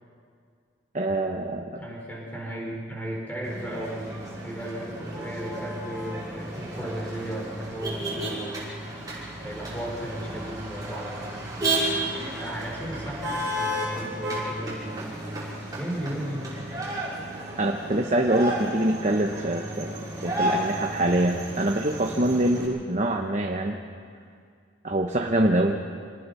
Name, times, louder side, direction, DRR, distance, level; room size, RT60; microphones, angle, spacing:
voice 1, 0.9-1.7 17.6-19.9 20.2-23.8 24.8-25.8, right 1 dB, 35° right, 2 dB, 1.0 m, -24 dB
voice 2, 1.8-4.0 4.4-8.6 9.4-11.5 12.3-15.2 15.7-17.0, right 1 dB, 10° left, -3 dB, 5.1 m, -35 dB
Motor vehicle (road), 3.4-22.7, right 1 dB, 20° right, 5.5 m, -33 dB
25.5 x 19.5 x 5.6 m, 2.2 s
head